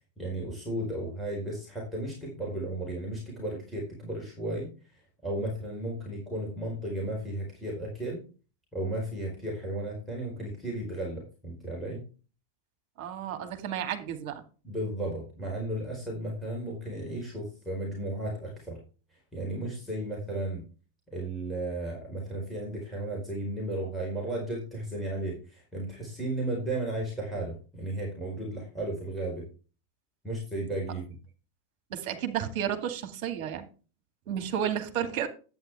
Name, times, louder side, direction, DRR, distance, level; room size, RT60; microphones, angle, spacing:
voice 1, 0.2-4.7 5.2-8.2 8.7-12.1 14.6-18.8 19.3-20.6 21.1-29.5 30.2-31.2, right 1 dB, 5° right, 4.7 m, -34 dB
voice 2, 13.0-14.4 31.9-33.7 34.3-35.3, right 9 dB, 45° right, 2.2 m, -32 dB
11.0 x 9.1 x 3.5 m
figure-of-eight pair, 90°, 0 cm